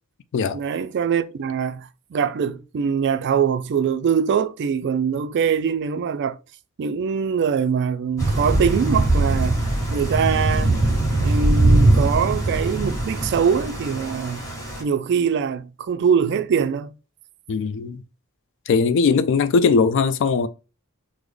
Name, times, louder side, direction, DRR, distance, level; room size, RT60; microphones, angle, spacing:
voice 1, 0.5-6.4 6.8-9.6 9.9-10.8 11.2-14.4 14.8-16.9, right 7 dB, 50° right, 0.3 m, -23 dB
Thunder / Rain, 8.2-14.8, right 2 dB, 15° left, 1.5 m, -21 dB
voice 2, 17.5-18.0 18.7-20.5, left 5 dB, 55° left, 0.3 m, -19 dB
3.7 x 2.0 x 3.1 m
head